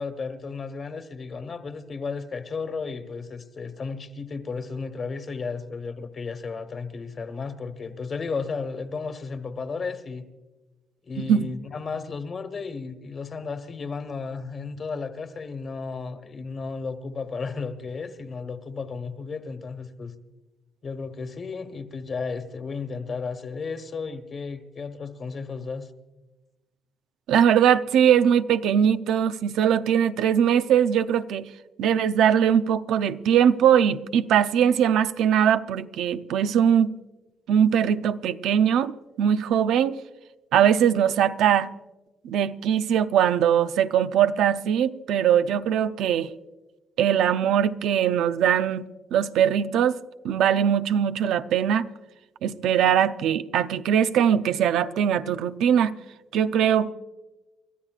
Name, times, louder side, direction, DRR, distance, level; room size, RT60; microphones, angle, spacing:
voice 1, 0.0-10.3 11.0-20.1 20.8-25.9, left 4 dB, 45° left, 1.4 m, -34 dB
voice 2, 11.2-11.5 27.3-31.5 31.8-37.0 37.5-38.9 39.2-40.0 40.5-41.7 42.2-46.3 47.0-48.8 49.1-50.0 50.2-51.9 52.4-55.9 56.3-56.9, right 9 dB, 85° right, 0.5 m, -21 dB
29.0 x 13.0 x 2.4 m
cardioid pair, 90°, 0 cm